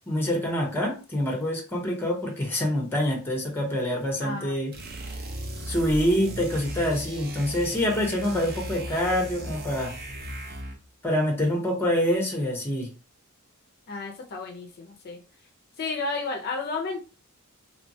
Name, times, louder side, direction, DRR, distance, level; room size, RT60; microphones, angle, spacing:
voice 1, 0.1-4.7 5.7-9.9 11.0-12.9, left 1 dB, 10° left, 0 dB, 0.7 m, -26 dB
voice 2, 4.2-4.6 13.9-15.2 15.8-17.0, left 3 dB, 45° left, 2 dB, 0.4 m, -32 dB
sound 1, 4.7-10.9, right 1 dB, 45° right, 0.6 m, -37 dB
2.9 x 2.1 x 2.6 m, 0.33 s
head